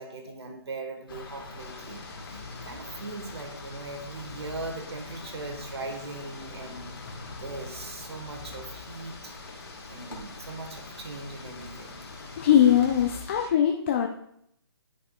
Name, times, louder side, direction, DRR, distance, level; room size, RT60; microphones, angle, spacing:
voice 1, 0.0-6.9 7.4-9.3 9.9-12.0, right 3 dB, 80° right, 4 dB, 1.4 m, -40 dB
sound 1, 1.1-13.2, left 3 dB, 55° left, 1.6 m, -44 dB
sound 2, 1.6-13.5, left 3 dB, 70° left, 2.2 m, -47 dB
voice 2, 12.4-14.1, left 9 dB, 30° left, 3 dB, 0.4 m, -21 dB
10.0 x 5.6 x 2.3 m, 0.73 s
hypercardioid pair, 155°, 14 cm